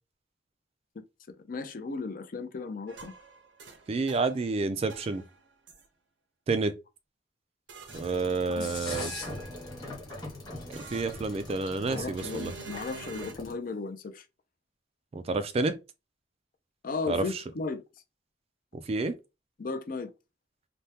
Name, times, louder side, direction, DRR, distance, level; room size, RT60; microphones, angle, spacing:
voice 1, 1.4-3.1 8.2-8.7 11.9-14.2 16.8-17.8 19.6-20.1, left 4 dB, 50° left, 0.5 m, -35 dB
sound 1, 2.9-4.5 4.9-5.8 7.7-8.4 8.9-9.8 10.7-11.6 12.2-13.3, right 4 dB, 70° right, 0.6 m, -47 dB
voice 2, 3.9-5.2 6.5-6.7 7.9-9.1 10.7-12.5 15.1-15.8 17.1-17.2 18.7-19.2, right 3 dB, 35° right, 0.3 m, -29 dB
sound 2, 7.9-13.5, left 2 dB, 25° left, 1.3 m, -41 dB
3.4 x 2.1 x 2.8 m
head